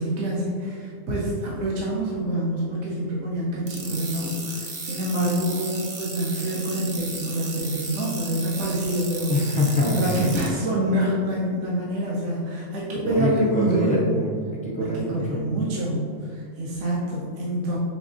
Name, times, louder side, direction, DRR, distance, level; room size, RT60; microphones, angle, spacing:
voice 1, 0.0-9.3 9.8-14.1 14.8-17.8, right 1 dB, 70° right, -5 dB, 1.1 m, -26 dB
sound 1, 3.7-10.5, right 3 dB, 45° right, 0.7 m, -35 dB
voice 2, 9.3-10.1 12.9-15.4, left 1 dB, 10° left, -3 dB, 0.4 m, -25 dB
5.8 x 3.5 x 2.6 m, 2.2 s
omnidirectional pair, 1.3 m